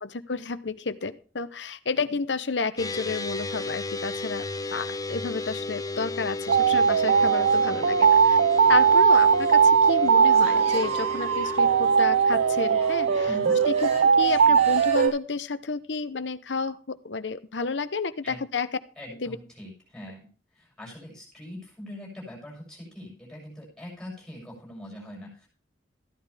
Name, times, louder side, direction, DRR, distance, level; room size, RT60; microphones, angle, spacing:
voice 1, 0.0-4.4 4.7-8.4 8.7-13.3 13.7-13.9 14.2-18.7 19.2-19.4, left 4 dB, 70° left, 12 dB, 0.9 m, -31 dB
sound 1, 2.8-13.9, left 2 dB, 20° left, 0.7 m, -34 dB
sound 2, 6.5-15.1, right 2 dB, 35° right, 3.9 m, -43 dB
sound 3, 6.5-15.1, right 6 dB, 85° right, 0.4 m, -20 dB
voice 2, 13.2-13.6 18.2-18.4 19.0-20.3 20.5-25.5, equal, 5° left, -3 dB, 6.9 m, -42 dB
14.5 x 11.5 x 3.4 m, 0.38 s
head